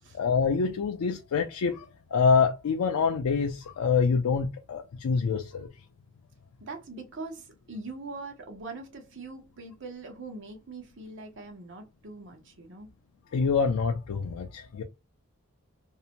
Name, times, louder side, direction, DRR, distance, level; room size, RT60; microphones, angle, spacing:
voice 1, 0.1-5.7 13.3-14.8, left 5 dB, 85° left, 0.4 m, -26 dB
voice 2, 6.6-12.9, right 3 dB, 55° right, 0.7 m, -42 dB
2.6 x 2.1 x 2.8 m
head